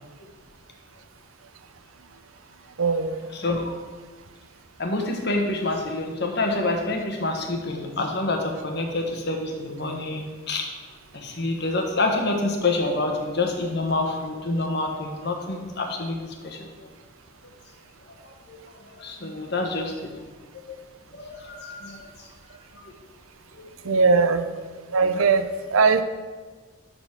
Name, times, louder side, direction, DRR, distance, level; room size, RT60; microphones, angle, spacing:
voice 1, 2.8-3.2 23.8-24.4 24.9-25.4 25.7-26.0, right 4 dB, 85° right, 10 dB, 0.6 m, -19 dB
voice 2, 3.3-3.7 4.8-10.7 11.1-16.9 18.1-20.1 20.7-20.8 21.1-22.3 22.7-23.0 23.5-24.3, left 2 dB, 55° left, 2 dB, 1.4 m, -28 dB
12.0 x 4.2 x 6.0 m, 1.4 s
head